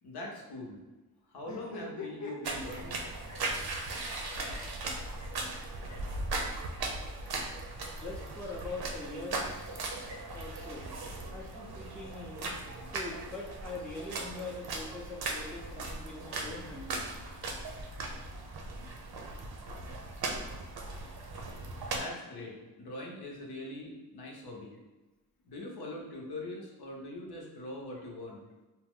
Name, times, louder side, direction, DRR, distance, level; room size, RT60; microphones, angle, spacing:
voice 1, 0.0-0.8 1.3-3.0 22.0-24.8 25.4-28.4, left 1 dB, 80° left, -1 dB, 0.8 m, -42 dB
sound 1, 1.4-4.0 4.2-5.6 5.9-6.0 6.3-6.4 6.7-6.9 7.9-8.9, left 3 dB, 50° left, 0.7 m, -47 dB
sound 2, 2.4-22.0, right 2 dB, 75° right, 0.6 m, -38 dB
voice 2, 7.9-10.8 11.3-12.6 12.9-17.1, left 2 dB, 5° left, -1 dB, 0.4 m, -43 dB
2.9 x 2.0 x 3.6 m, 1.2 s
wide cardioid pair, 95°, 38 cm